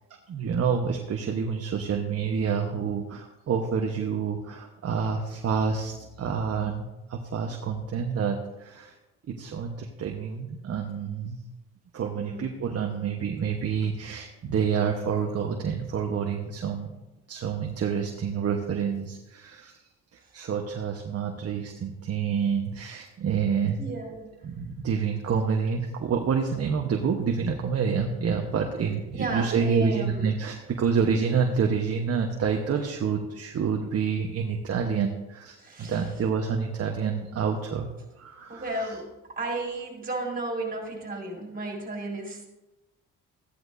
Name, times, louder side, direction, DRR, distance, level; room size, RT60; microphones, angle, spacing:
voice 1, 0.3-8.9 9.3-11.4 11.9-16.9 17.3-19.7 20.1-23.9 24.4-37.9 38.2-38.9, right 6 dB, 55° right, 2 dB, 1.2 m, -28 dB
voice 2, 12.1-12.5 23.8-24.3 29.1-30.4 35.6-36.0 38.5-42.5, right 2 dB, 30° right, 0 dB, 4.6 m, -34 dB
14.5 x 10.5 x 2.7 m, 1.0 s
cardioid pair, 90°, 30 cm